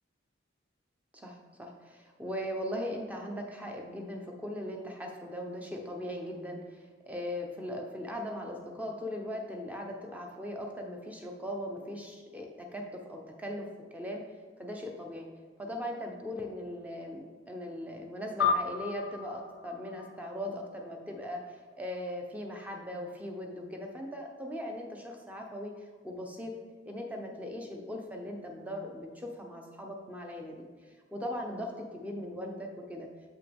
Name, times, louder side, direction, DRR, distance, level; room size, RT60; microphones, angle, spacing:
voice 1, 1.1-14.2 14.6-15.3 15.6-26.5 26.9-33.1, left 1 dB, 10° right, 1 dB, 0.8 m, -39 dB
sound 1, 18.4-21.1, left 5 dB, 90° left, 0.5 m, -33 dB
7.0 x 5.5 x 3.5 m, 1.5 s
head